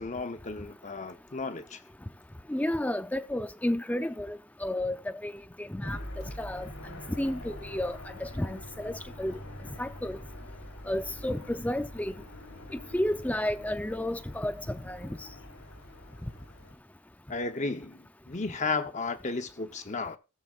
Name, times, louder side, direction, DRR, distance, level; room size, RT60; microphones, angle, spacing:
voice 1, 0.0-1.8 17.3-20.2, left 3 dB, 35° left, 0.8 m, -34 dB
voice 2, 2.5-5.0 5.2-5.3 5.6-6.7 7.2-9.4 9.8-10.2 10.9-12.1 12.9-15.2, left 1 dB, 5° left, 0.4 m, -32 dB
sound 1, 5.8-16.7, left 1 dB, 90° left, 3.2 m, -45 dB
17.0 x 7.6 x 2.4 m
head